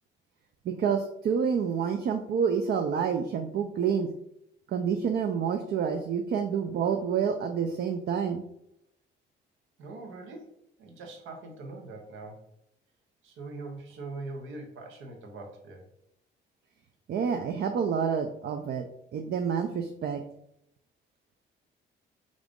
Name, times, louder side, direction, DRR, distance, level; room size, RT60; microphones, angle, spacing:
voice 1, 0.6-4.1 4.7-8.4 17.1-20.2, right 7 dB, 55° right, 5 dB, 0.4 m, -28 dB
voice 2, 9.8-10.5 10.8-12.5 13.2-15.8, right 3 dB, 80° right, 3 dB, 0.8 m, -42 dB
3.7 x 2.5 x 3.5 m, 0.76 s
cardioid pair, 90°, 20 cm